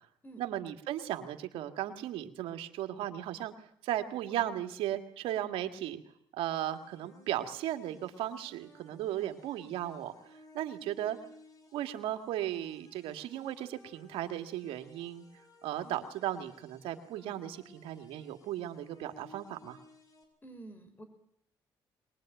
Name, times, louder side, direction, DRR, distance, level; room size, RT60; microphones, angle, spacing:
voice 1, 0.4-3.5 3.8-6.0 6.4-10.1 10.5-11.2 11.7-15.3 15.6-19.8, right 12 dB, 90° right, 7 dB, 2.0 m, -36 dB
sound 1, 6.5-20.2, left 1 dB, 40° left, 5.7 m, -59 dB
voice 2, 20.4-21.0, right 2 dB, 20° left, 8 dB, 5.9 m, -49 dB
22.5 x 20.5 x 9.1 m, 0.69 s
cardioid pair, 85°, 9 cm